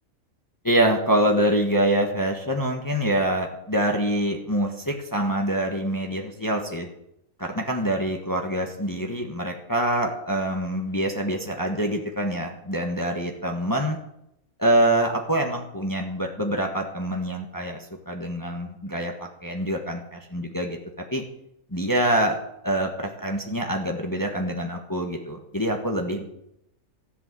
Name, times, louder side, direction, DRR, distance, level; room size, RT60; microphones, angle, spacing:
voice 1, 0.6-6.9 7.4-14.0 14.6-19.1 19.4-20.8 21.1-21.2 21.7-22.4 22.6-26.2, right 1 dB, 15° left, 2 dB, 1.4 m, -25 dB
13.5 x 8.2 x 7.7 m, 0.80 s
omnidirectional pair, 1.5 m